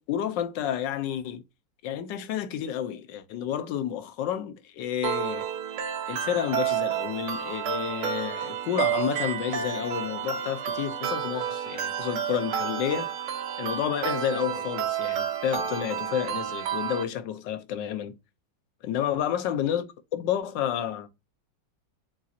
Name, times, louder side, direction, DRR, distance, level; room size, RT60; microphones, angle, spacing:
voice 1, 0.0-1.4 1.8-5.5 6.1-13.1 13.6-18.1 18.8-19.9 20.1-21.1, left 10 dB, 80° left, 1.3 m, -30 dB
sound 1, 5.0-17.0, right 9 dB, 75° right, 1.4 m, -30 dB
7.2 x 2.7 x 2.4 m
omnidirectional pair, 2.0 m